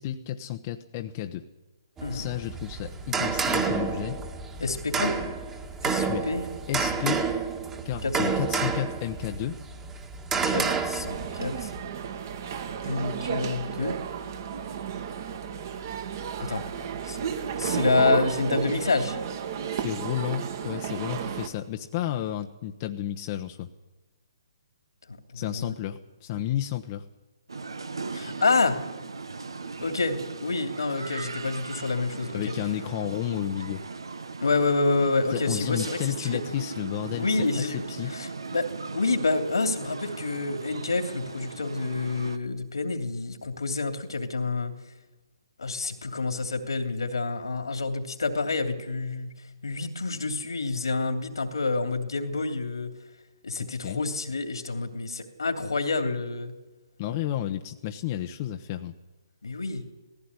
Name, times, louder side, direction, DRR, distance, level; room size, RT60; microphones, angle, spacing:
voice 1, 0.0-1.5 2.1-4.2 6.0-6.3 6.7-7.3 7.8-9.6 19.7-23.7 25.3-27.1 32.3-33.8 35.3-38.1 53.6-54.0 57.0-58.9, left 12 dB, 35° left, 5 dB, 1.0 m, -32 dB
sound 1, 2.0-11.8, right 5 dB, 15° right, 1.8 m, -30 dB
voice 2, 4.6-5.2 5.8-6.4 8.0-8.2 10.5-11.7 12.8-13.9 16.4-16.6 17.0-17.2 17.6-19.2 25.3-25.7 28.1-28.8 29.8-32.4 34.4-36.4 37.1-37.9 38.1-38.7 38.9-44.7 45.6-49.3 49.6-52.9 53.4-56.5 59.4-59.8, left 3 dB, 80° left, 6 dB, 2.9 m, -28 dB
sound 2, 11.1-21.5, right 7 dB, 45° right, 2.1 m, -32 dB
sound 3, 27.5-42.4, right 4 dB, 80° right, 1.5 m, -38 dB
17.5 x 15.5 x 9.7 m, 1.1 s
figure-of-eight pair, 145°, 2 cm